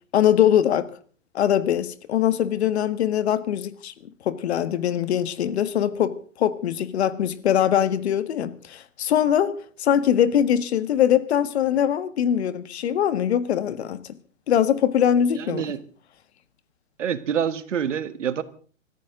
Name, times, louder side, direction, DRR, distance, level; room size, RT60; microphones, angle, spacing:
voice 1, 0.1-0.9 1.3-3.9 4.3-9.5 9.8-14.0 14.5-15.6, left 10 dB, 55° left, 1.6 m, -22 dB
voice 2, 15.4-15.8 17.0-18.4, right 8 dB, 70° right, 1.7 m, -26 dB
25.0 x 14.0 x 3.8 m
hypercardioid pair, 135°, 38 cm